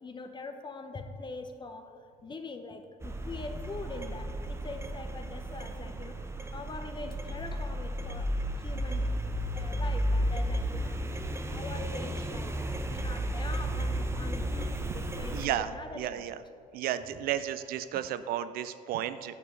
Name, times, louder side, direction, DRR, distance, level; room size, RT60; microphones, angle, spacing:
voice 1, 0.0-9.1 9.4-11.2 11.5-12.5 12.9-16.4 17.1-17.2 17.9-18.1, left 3 dB, 25° left, 7 dB, 0.8 m, -43 dB
sound 1, 3.0-15.5, equal, 15° right, 0.7 m, -33 dB
voice 2, 15.3-16.4 16.7-19.3, right 11 dB, 60° right, 12 dB, 0.4 m, -33 dB
8.4 x 4.7 x 5.2 m, 2.3 s
hypercardioid pair, 60°, 17 cm